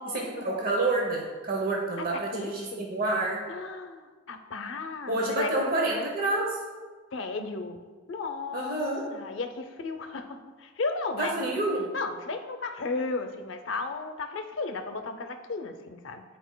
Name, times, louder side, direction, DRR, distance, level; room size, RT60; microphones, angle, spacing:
voice 1, 0.1-3.5 5.1-6.6 8.5-9.1 11.2-11.9, right 2 dB, 50° right, -1 dB, 0.8 m, -28 dB
voice 2, 2.0-2.9 3.5-5.5 5.9-6.1 7.1-8.8 9.1-11.5 11.9-16.2, left 3 dB, 75° left, 8 dB, 0.6 m, -35 dB
10.0 x 4.5 x 2.2 m, 1.4 s
head